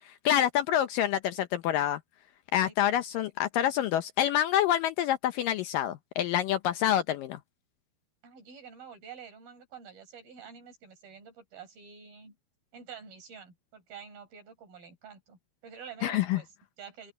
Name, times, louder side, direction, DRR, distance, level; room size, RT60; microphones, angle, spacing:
voice 1, 0.3-2.0 2.5-7.4 16.0-16.4, left 11 dB, 80° left, 2.0 m, -27 dB
voice 2, 2.6-3.3 8.2-12.3 12.7-17.1, right 7 dB, 60° right, 6.7 m, -48 dB
open air
omnidirectional pair, 4.7 m